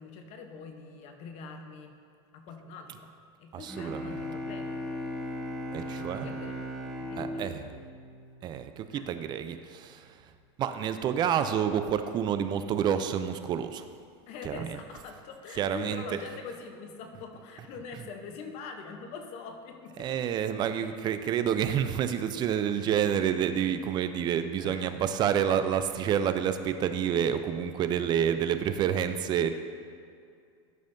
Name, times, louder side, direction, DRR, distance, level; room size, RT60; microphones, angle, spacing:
voice 1, 0.0-2.0 2.3-3.1 3.4-4.7 6.0-6.6 7.0-7.6 8.9-9.1 14.3-20.1 20.8-21.0 24.6-24.9, left 5 dB, 45° left, 5 dB, 0.9 m, -44 dB
voice 2, 3.5-4.2 5.7-6.3 7.2-7.7 8.4-10.2 10.6-13.9 14.4-14.8 15.6-16.0 20.0-29.5, right 9 dB, 30° right, 10 dB, 0.4 m, -28 dB
Bowed string instrument, 3.7-8.6, equal, ahead, 1.0 m, -37 dB
12.5 x 5.5 x 2.6 m, 2.3 s
supercardioid pair, 135°, 15 cm